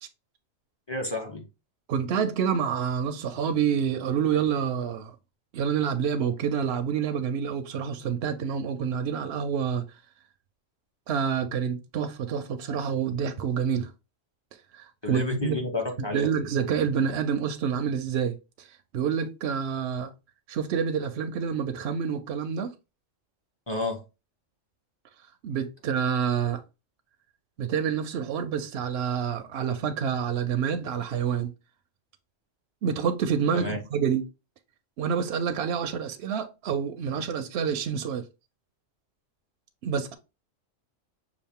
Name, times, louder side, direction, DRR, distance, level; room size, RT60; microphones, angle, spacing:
voice 1, 0.9-1.4 15.0-16.5 23.7-24.0 33.5-33.8, left 2 dB, 25° left, 0.7 m, -31 dB
voice 2, 1.9-5.1 5.5-9.8 11.1-13.9 14.7-15.6 16.1-18.7 18.9-20.1 20.5-22.7 25.4-26.6 27.6-31.5 32.8-34.2 35.0-38.3 39.8-40.1, right 7 dB, 65° right, 0.7 m, -28 dB
5.8 x 2.4 x 3.5 m
omnidirectional pair, 1.3 m